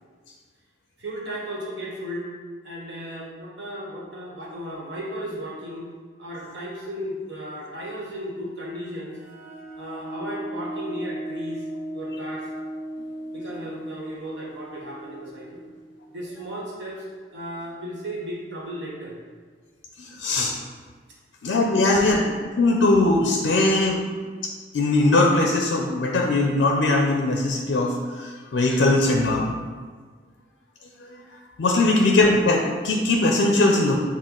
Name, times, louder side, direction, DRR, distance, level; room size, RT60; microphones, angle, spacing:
voice 1, 1.0-2.3 2.6-5.9 6.2-9.2 9.7-11.7 11.9-12.5 13.3-15.7 16.1-17.1 17.3-19.1 21.5-22.1 31.8-32.0, equal, 80° right, -4 dB, 1.1 m, -35 dB
sound 1, 9.1-16.6, right 1 dB, 25° right, 0.7 m, -37 dB
voice 2, 20.0-20.5 21.4-22.2 22.6-24.1 24.7-29.6 31.0-34.0, left 2 dB, 75° left, 0 dB, 0.4 m, -20 dB
6.1 x 2.2 x 3.7 m, 1.5 s
head